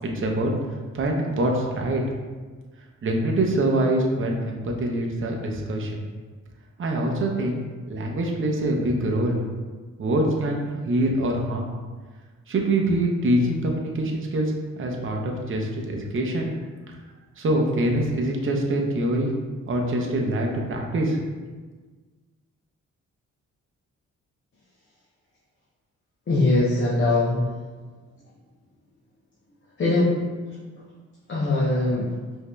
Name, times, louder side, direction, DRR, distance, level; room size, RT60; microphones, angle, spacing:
voice 1, 0.0-0.5 0.9-2.0 3.0-6.0 6.8-7.6 7.9-9.4 10.0-11.7 12.5-16.5 17.4-19.3 19.7-21.2, right 1 dB, 40° right, 0 dB, 0.7 m, -24 dB
voice 2, 26.3-27.5 29.8-30.2 31.3-32.1, left 2 dB, 40° left, -6 dB, 0.8 m, -21 dB
4.9 x 2.7 x 2.2 m, 1.4 s
cardioid pair, 85°, 31 cm